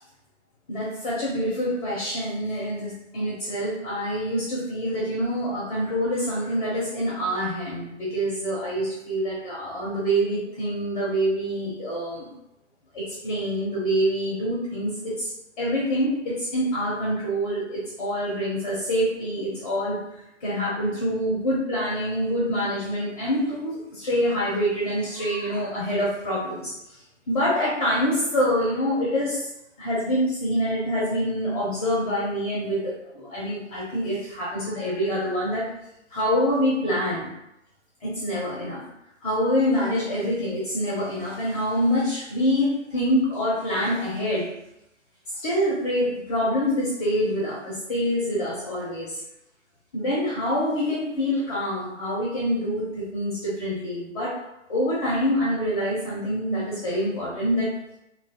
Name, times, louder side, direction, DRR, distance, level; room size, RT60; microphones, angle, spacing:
voice 1, 0.7-12.3 12.9-15.3 15.6-20.0 20.4-26.7 27.3-29.5 29.8-35.7 36.1-37.3 38.0-38.8 39.2-44.5 45.4-49.2 49.9-54.4 54.7-57.7, equal, 30° left, -6 dB, 0.7 m, -26 dB
2.8 x 2.4 x 2.8 m, 0.86 s
hypercardioid pair, 150°, 38 cm